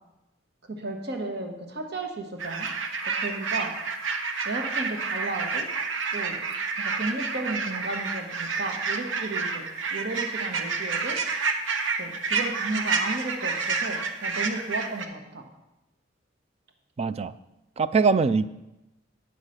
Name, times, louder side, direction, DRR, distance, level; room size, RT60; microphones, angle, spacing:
voice 1, 0.7-2.7 3.0-3.7 4.4-5.6 6.1-6.4 6.8-11.2 12.0-15.4, right 2 dB, 60° right, 3 dB, 1.3 m, -34 dB
sound 1, 2.4-15.0, right 4 dB, 75° right, 0.9 m, -29 dB
voice 2, 17.0-17.3 17.8-18.5, right 4 dB, 35° right, 14 dB, 0.3 m, -22 dB
9.0 x 5.7 x 6.4 m, 0.95 s
head